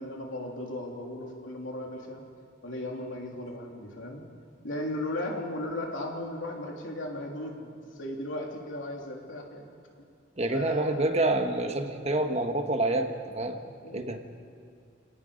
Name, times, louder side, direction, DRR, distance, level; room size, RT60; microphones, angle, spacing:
voice 1, 0.0-2.2 2.6-4.2 4.6-9.7 10.5-11.2 13.8-14.2, left 1 dB, 85° left, 0 dB, 3.4 m, -36 dB
voice 2, 10.4-14.2, right 2 dB, 35° right, 6 dB, 1.3 m, -28 dB
29.5 x 18.5 x 5.2 m, 2.4 s
head